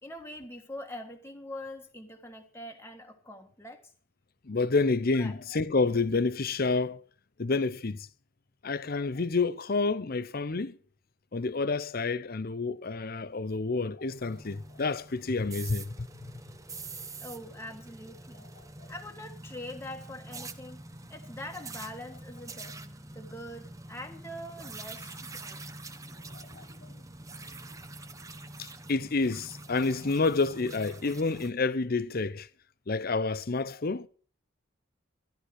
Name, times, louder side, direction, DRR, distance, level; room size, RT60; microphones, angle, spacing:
voice 1, 0.0-3.9 5.1-5.4 17.2-18.4 18.9-20.8 21.1-22.8 23.1-25.6, left 1 dB, 10° left, 1.5 m, -43 dB
voice 2, 4.5-7.0 7.4-8.1 8.6-10.8 11.3-15.9 16.2-16.3 26.3-26.6 28.6-32.5 32.9-34.1, left 3 dB, 45° left, 0.7 m, -29 dB
sound 1, 14.1-31.5, right 2 dB, 15° right, 0.8 m, -45 dB
14.0 x 12.0 x 6.3 m
head